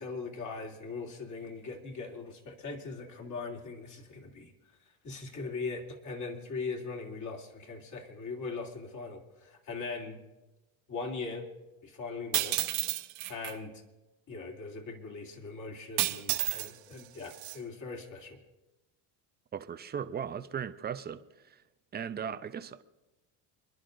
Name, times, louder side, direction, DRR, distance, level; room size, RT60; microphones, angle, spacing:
voice 1, 0.0-4.5 5.0-10.2 10.9-11.5 11.8-12.6 13.3-13.8 14.3-18.4, left 4 dB, 40° left, 0 dB, 2.8 m, -40 dB
sound 1, 12.3-13.5 16.0-16.7 17.0-17.6, right 18 dB, 75° right, 1.0 m, -31 dB
voice 2, 19.5-21.2 21.5-21.6 21.9-22.8, right 7 dB, 20° right, 11 dB, 0.6 m, -37 dB
29.0 x 11.0 x 2.6 m, 1.0 s
supercardioid pair, 120°, 46 cm